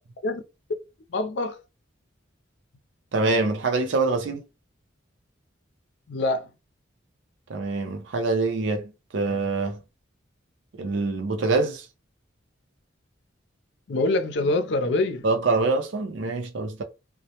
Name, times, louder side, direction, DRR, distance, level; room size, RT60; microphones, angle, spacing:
voice 1, 1.1-1.6 6.1-6.5 13.9-15.3, left 2 dB, 65° left, 0.5 m, -25 dB
voice 2, 3.1-4.4 7.5-9.8 10.8-11.9 15.2-16.8, right 3 dB, 70° right, 0.5 m, -25 dB
2.2 x 2.0 x 2.8 m
head